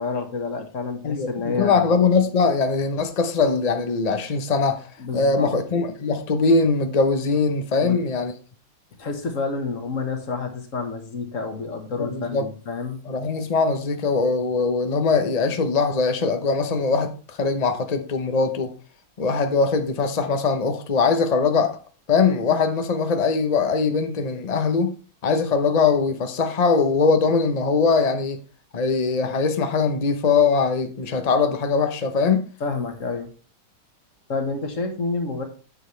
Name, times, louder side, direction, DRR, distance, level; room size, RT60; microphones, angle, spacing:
voice 1, 0.0-1.9 5.0-5.5 7.8-8.0 9.0-13.0 32.6-33.3 34.3-35.4, left 4 dB, 40° left, 1.6 m, -29 dB
voice 2, 1.0-4.8 5.1-8.3 12.0-12.5 13.1-18.7 19.2-21.7 22.1-24.9 25.2-28.4 28.7-32.5, left 4 dB, 70° left, 0.3 m, -21 dB
9.7 x 7.2 x 3.2 m
omnidirectional pair, 2.2 m